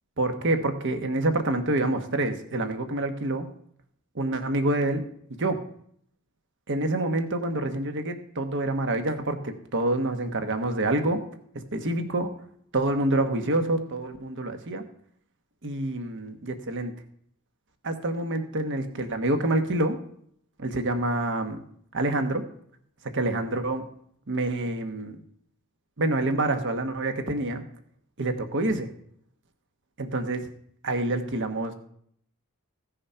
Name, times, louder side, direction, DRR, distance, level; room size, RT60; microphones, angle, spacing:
voice 1, 0.2-3.5 4.1-5.0 5.4-5.6 6.7-11.2 11.7-12.3 12.7-14.8 15.6-16.9 17.8-20.0 20.6-21.6 21.9-22.4 23.1-23.9 24.3-25.2 26.0-27.6 28.2-28.9 30.0-30.5 30.8-31.7, right 2 dB, 55° right, 7 dB, 1.2 m, -27 dB
15.5 x 6.4 x 5.6 m, 0.66 s
head